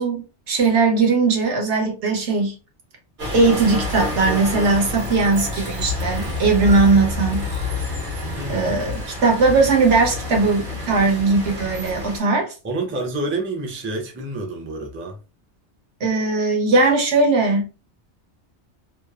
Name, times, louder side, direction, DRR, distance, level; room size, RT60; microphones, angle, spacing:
voice 1, 0.0-2.5 3.3-7.5 8.5-12.5 16.0-17.7, right 3 dB, 80° right, 1.2 m, -19 dB
sound 1, 3.2-12.2, left 2 dB, 50° right, 1.0 m, -28 dB
voice 2, 8.4-8.7 12.6-15.2, right 2 dB, 20° right, 0.3 m, -28 dB
3.1 x 2.0 x 2.3 m
omnidirectional pair, 1.2 m